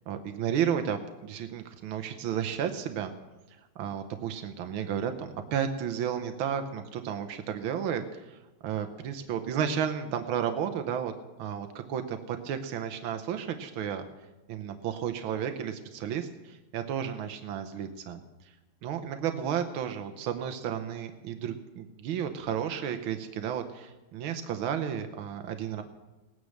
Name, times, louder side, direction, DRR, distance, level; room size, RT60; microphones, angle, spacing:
voice 1, 0.1-3.1 3.8-11.1 11.4-14.0 14.5-18.2 18.8-25.8, right 8 dB, 85° right, 7 dB, 1.7 m, -32 dB
18.5 x 9.6 x 6.5 m, 1.1 s
omnidirectional pair, 2.2 m